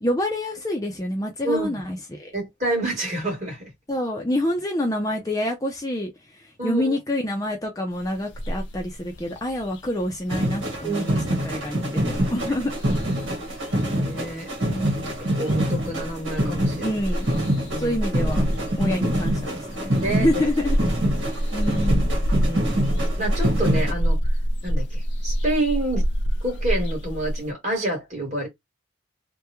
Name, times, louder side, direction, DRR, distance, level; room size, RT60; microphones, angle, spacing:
voice 1, 0.0-2.3 3.9-6.1 6.6-11.2 11.4-12.7 14.7-14.9 16.8-17.3 17.8-18.5 18.8-20.8 21.5-22.1, left 1 dB, 15° left, 0.5 m, -27 dB
voice 2, 1.4-1.8 2.3-3.7 6.6-7.0 10.8-11.3 14.0-14.5 15.4-16.9 17.7-18.0 18.7-19.0 20.0-20.4 22.4-22.7 23.2-24.2 24.6-26.0 26.4-28.5, right 1 dB, 35° right, 2.0 m, -28 dB
sound 1, 7.9-27.5, equal, 70° left, 0.6 m, -28 dB
sound 2, 10.3-23.9, right 1 dB, 75° right, 1.4 m, -26 dB
3.4 x 2.2 x 2.9 m
head